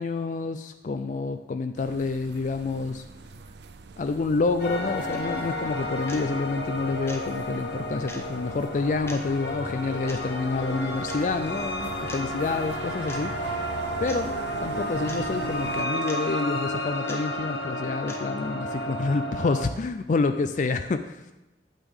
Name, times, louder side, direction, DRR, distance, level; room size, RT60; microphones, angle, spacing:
voice 1, 0.0-3.0 4.0-13.6 14.0-14.3 14.6-21.2, left 3 dB, 45° left, 9 dB, 0.4 m, -28 dB
sound 1, 1.8-15.8, right 4 dB, 70° right, 0.5 m, -42 dB
sound 2, 4.6-19.7, equal, 65° left, 1.1 m, -32 dB
sound 3, 5.1-5.2 6.1-6.3 7.1-7.2 8.1-8.2 9.1-9.2 10.1-10.2 11.1-11.2 12.1-12.2 13.1-13.2 14.1-14.2 15.1-15.2 16.1-16.2 17.1-17.2 18.1-18.2, left 2 dB, 15° left, 1.0 m, -40 dB
8.8 x 8.2 x 3.6 m, 1.0 s
head